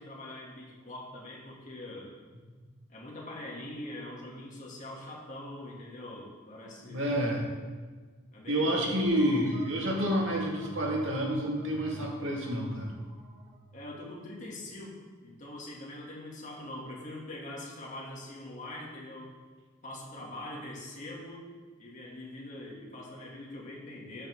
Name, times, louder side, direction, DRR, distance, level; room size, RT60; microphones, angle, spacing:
voice 1, 0.0-2.1 2.9-7.2 8.3-9.1 13.7-19.3 19.8-21.5 21.8-24.3, left 1 dB, 40° left, -3 dB, 2.6 m, -43 dB
voice 2, 6.9-7.5 8.5-12.9, equal, 70° right, -1 dB, 2.3 m, -29 dB
sound 1, 9.0-14.5, equal, 15° right, 1.8 m, -46 dB
13.5 x 8.7 x 3.8 m, 1.4 s
head